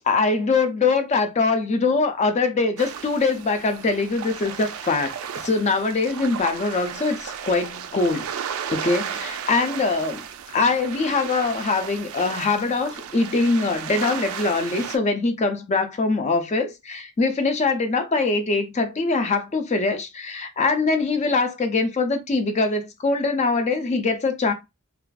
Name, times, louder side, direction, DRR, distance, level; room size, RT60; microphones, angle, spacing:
voice 1, 0.1-5.2 5.4-8.3 8.7-10.2 10.5-24.5, left 3 dB, 35° left, 0.4 m, -23 dB
sound 1, 2.8-15.0, right 8 dB, 75° right, 0.3 m, -34 dB
2.4 x 2.3 x 2.3 m
head